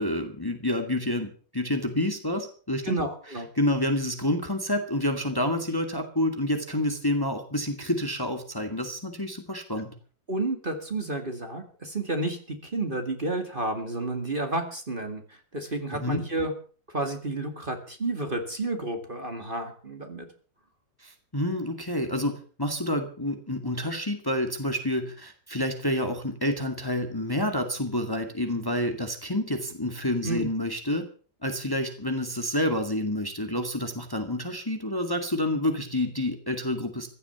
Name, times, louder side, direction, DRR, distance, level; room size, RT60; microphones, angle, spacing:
voice 1, 0.0-3.0 3.6-9.9 15.9-16.2 21.0-31.0 31.4-37.1, left 1 dB, 10° left, 6 dB, 2.0 m, -28 dB
voice 2, 2.9-3.5 10.3-16.5 16.9-20.3 30.2-30.5, right 2 dB, 30° right, 6 dB, 2.2 m, -31 dB
15.5 x 11.5 x 7.0 m, 0.41 s
omnidirectional pair, 1.9 m